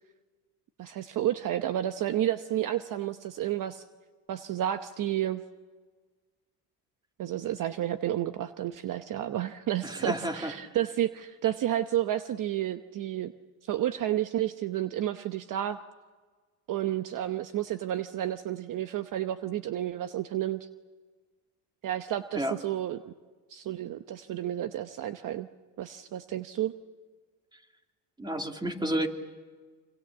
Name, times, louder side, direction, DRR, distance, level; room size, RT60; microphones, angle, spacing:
voice 1, 0.8-3.8 4.3-5.4 7.2-13.3 13.7-15.8 16.7-20.7 21.8-23.1 23.5-25.5 25.8-26.7, right 12 dB, 50° right, 10 dB, 0.9 m, -31 dB
voice 2, 9.8-10.5 22.3-22.6 28.2-29.1, right 1 dB, 10° right, 4 dB, 2.6 m, -30 dB
26.5 x 26.0 x 7.3 m, 1.4 s
cardioid pair, 115°, 41 cm